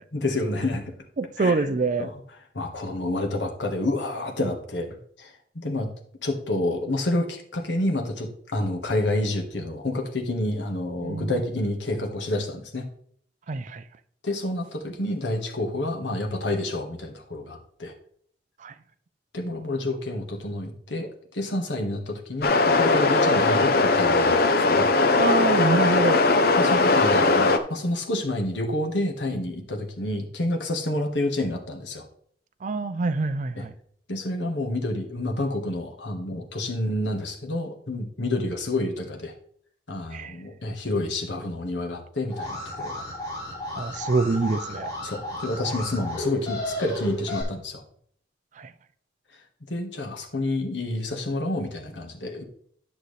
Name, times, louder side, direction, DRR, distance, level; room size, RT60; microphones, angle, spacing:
voice 1, 0.1-0.9 1.4-1.6 2.0-2.1 2.5-5.9 6.2-12.9 14.2-17.9 19.3-24.9 26.6-32.0 33.6-33.7 34.1-39.3 39.9-43.0 43.7-43.8 45.0-47.8 49.7-52.4, left 1 dB, 85° left, 1.5 m, -29 dB
voice 2, 1.2-2.1 11.0-11.4 13.5-13.8 18.6-18.7 25.2-26.2 32.6-33.7 40.1-40.4 43.8-44.9 48.6-48.7, right 3 dB, 45° right, 0.4 m, -26 dB
sound 1, 22.4-27.6, left 3 dB, 55° left, 0.7 m, -19 dB
Alarm, 42.3-47.4, left 1 dB, 20° left, 3.5 m, -33 dB
11.0 x 6.2 x 3.2 m
head